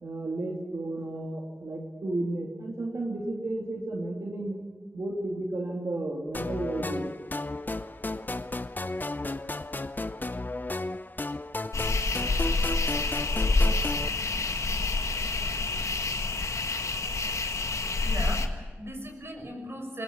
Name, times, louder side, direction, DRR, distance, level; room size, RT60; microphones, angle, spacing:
voice 1, 0.0-4.6 4.9-7.1, right 2 dB, 85° right, -1 dB, 2.8 m, -33 dB
sound 1, 6.3-14.1, left 2 dB, 35° left, 0.8 m, -34 dB
sound 2, 11.7-18.5, left 3 dB, 85° left, 1.6 m, -27 dB
voice 2, 18.0-20.0, equal, 50° right, 3 dB, 6.1 m, -38 dB
21.0 x 20.5 x 8.7 m, 1.4 s
wide cardioid pair, 55°, 5 cm